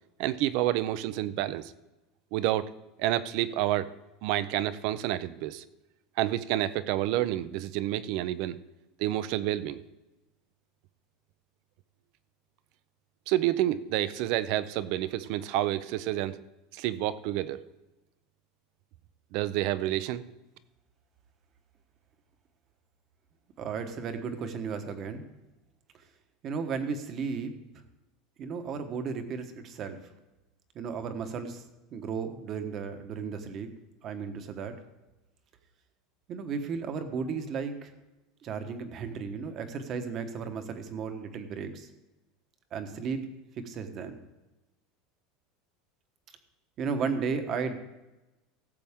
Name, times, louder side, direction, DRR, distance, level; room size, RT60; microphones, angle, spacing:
voice 1, 0.2-1.7 2.3-2.7 3.0-3.9 4.2-5.6 6.2-8.6 9.0-9.8 13.3-16.4 16.7-17.6 19.3-20.2, right 14 dB, 55° right, 15 dB, 0.6 m, -29 dB
voice 2, 23.6-25.2 26.4-27.5 28.4-30.0 30.7-31.6 31.9-33.7 34.0-34.7 36.3-37.9 38.4-41.9 42.7-43.2 43.6-44.2 46.8-47.8, right 5 dB, 35° right, 8 dB, 1.2 m, -34 dB
17.0 x 7.7 x 3.6 m, 1.0 s
supercardioid pair, 160°, 0 cm